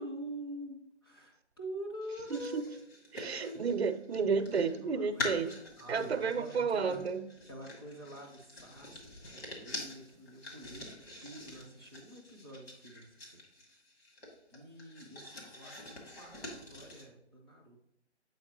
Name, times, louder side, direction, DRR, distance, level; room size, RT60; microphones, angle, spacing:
voice 1, 0.0-2.6 3.1-3.7 4.8-5.4 5.8-7.0 7.5-10.9 11.2-13.4 14.5-17.8, right 1 dB, 20° left, -2 dB, 0.8 m, -46 dB
sound 1, 2.0-4.8 5.2-17.0, left 1 dB, 55° left, 2.1 m, -45 dB
voice 2, 2.3-2.7 3.1-5.5 5.9-7.2, right 5 dB, 65° right, 9 dB, 0.7 m, -31 dB
7.8 x 4.4 x 2.9 m, 0.82 s
hypercardioid pair, 165°, 35 cm